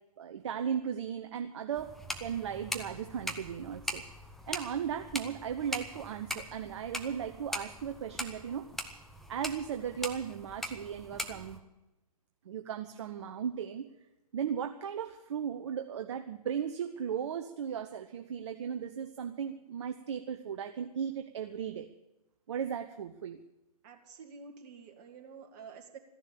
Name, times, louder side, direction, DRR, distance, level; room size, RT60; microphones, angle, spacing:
voice 1, 0.2-4.0 4.5-8.7 9.3-11.6 12.4-13.9 14.3-21.9 22.5-23.4, right 8 dB, 45° right, 6 dB, 1.0 m, -36 dB
sound 1, 1.7-11.6, left 1 dB, ahead, 0.8 m, -41 dB
voice 2, 23.8-26.0, right 5 dB, 30° right, 3 dB, 2.5 m, -49 dB
14.5 x 11.0 x 8.4 m, 0.96 s
figure-of-eight pair, 130°, 20 cm